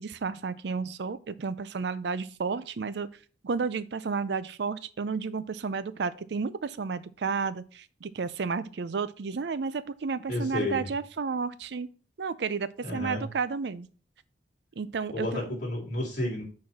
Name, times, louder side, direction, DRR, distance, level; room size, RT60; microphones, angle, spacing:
voice 1, 0.0-3.1 3.4-11.9 12.2-13.9 14.8-15.5, right 5 dB, 65° right, 16 dB, 0.5 m, -32 dB
voice 2, 10.3-10.9 12.8-13.3 15.1-16.4, left 1 dB, 45° left, -3 dB, 3.4 m, -31 dB
6.4 x 4.3 x 5.6 m, 0.39 s
head